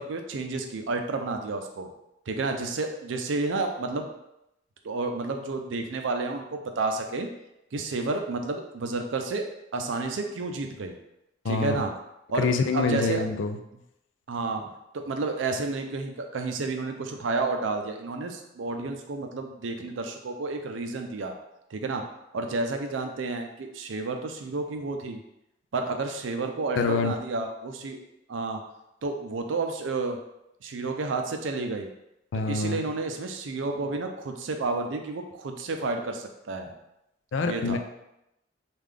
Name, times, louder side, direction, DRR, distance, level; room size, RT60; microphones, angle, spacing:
voice 1, 0.0-1.9 2.3-4.1 4.8-7.3 7.7-9.5 9.7-11.0 11.5-11.9 12.3-12.5 12.7-13.2 14.3-21.4 21.7-22.0 22.3-25.2 25.7-28.0 28.3-28.6 29.0-30.2 30.6-31.9 32.5-36.7 37.4-37.8, right 3 dB, 85° right, 5 dB, 0.5 m, -31 dB
voice 2, 11.4-11.9 12.4-13.6 26.8-27.1 32.3-32.8 37.3-37.8, left 4 dB, 80° left, 7 dB, 0.4 m, -26 dB
3.6 x 2.4 x 3.2 m, 0.86 s
head